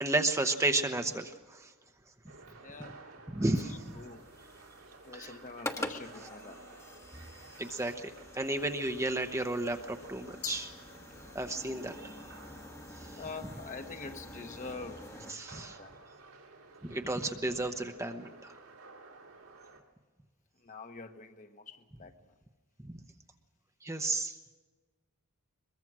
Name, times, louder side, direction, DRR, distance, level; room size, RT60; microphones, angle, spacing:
voice 1, 0.0-1.7 3.3-4.0 5.1-5.4 7.6-10.7 11.3-12.2 13.0-13.2 15.3-15.8 16.8-18.6 22.8-23.0 23.8-24.4, right 2 dB, 15° right, 6 dB, 0.9 m, -33 dB
sound 1, 2.3-19.8, right 3 dB, 75° right, 3.0 m, -54 dB
voice 2, 2.6-3.0 3.6-4.3 5.0-6.8 11.1-11.3 13.2-15.1 15.5-16.0 20.6-22.1, left 4 dB, 35° left, 6 dB, 1.2 m, -45 dB
sound 2, 3.6-15.3, left 1 dB, 15° left, 1.1 m, -46 dB
Glass, 10.4-11.7, left 11 dB, 70° left, 1.0 m, -44 dB
23.0 x 22.0 x 6.1 m, 1.4 s
head